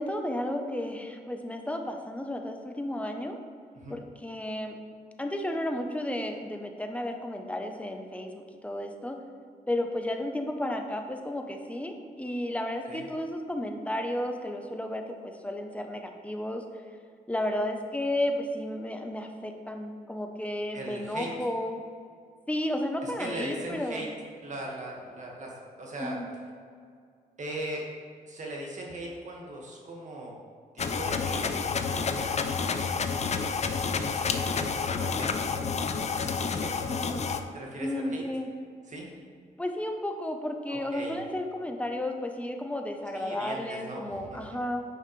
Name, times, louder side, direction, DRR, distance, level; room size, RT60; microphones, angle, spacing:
voice 1, 0.0-3.4 3.9-4.8 5.2-9.2 9.7-16.6 17.3-21.8 22.5-24.1 26.0-26.3 36.9-37.3 37.8-38.5 39.6-44.8, left 1 dB, 10° left, 4 dB, 0.9 m, -33 dB
voice 2, 20.7-21.3 23.0-24.1 24.4-26.2 27.4-27.9 28.3-30.3 30.7-32.9 33.2-35.6 36.1-36.9 37.5-38.2 38.9-39.1 40.7-41.2 43.1-44.4, right 1 dB, 55° right, -2 dB, 1.9 m, -39 dB
sound 1, 30.8-37.4, left 5 dB, 45° left, 0.5 m, -29 dB
9.5 x 5.6 x 3.3 m, 2.2 s
cardioid pair, 80°, 15 cm